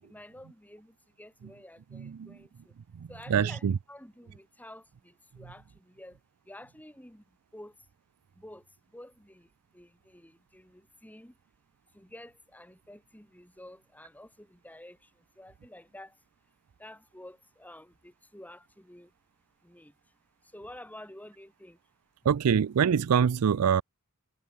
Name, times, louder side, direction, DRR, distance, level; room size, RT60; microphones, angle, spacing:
voice 1, 0.0-2.7 3.1-6.2 6.5-7.2 7.5-7.7 8.4-8.6 8.9-9.5 9.7-11.3 11.9-15.1 15.4-16.2 16.8-19.1 19.6-19.9 20.5-21.8, left 1 dB, 5° left, 4.3 m, -50 dB
voice 2, 1.9-2.3 3.3-3.8 22.3-23.8, right 7 dB, 85° right, 0.4 m, -24 dB
head